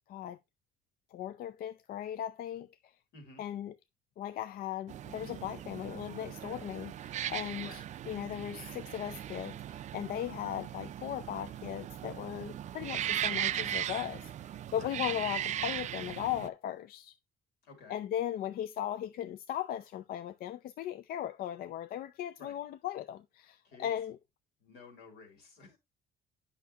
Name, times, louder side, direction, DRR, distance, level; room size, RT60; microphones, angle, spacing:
voice 1, 0.1-0.4 1.1-2.9 3.4-3.7 4.2-17.1 17.9-24.2, left 11 dB, 60° left, 0.4 m, -38 dB
voice 2, 3.1-3.4 7.6-7.8 14.7-14.9 17.6-18.0 22.4-22.5 23.6-23.9 24.6-25.8, left 4 dB, 85° left, 3.0 m, -53 dB
sound 1, 4.9-16.5, right 11 dB, 45° right, 0.4 m, -38 dB
8.4 x 5.8 x 2.8 m
cardioid pair, 110°, 17 cm